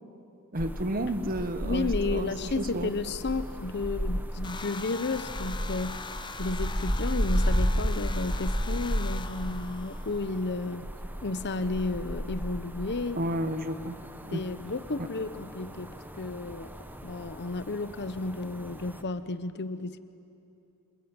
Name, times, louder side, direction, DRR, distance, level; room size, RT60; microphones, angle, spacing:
sound 1, 0.5-19.0, equal, 10° right, 1.1 m, -34 dB
voice 1, 0.5-2.9 13.1-13.9 14.2-14.4 15.0-15.1, right 1 dB, 40° right, 11 dB, 1.2 m, -31 dB
voice 2, 1.6-6.1 6.4-10.9 11.2-13.2 14.3-16.7 17.0-20.0, left 3 dB, 50° left, 13 dB, 0.9 m, -32 dB
sound 2, 4.4-10.6, left 4 dB, 20° left, 0.8 m, -42 dB
27.0 x 21.0 x 8.9 m, 2.7 s
head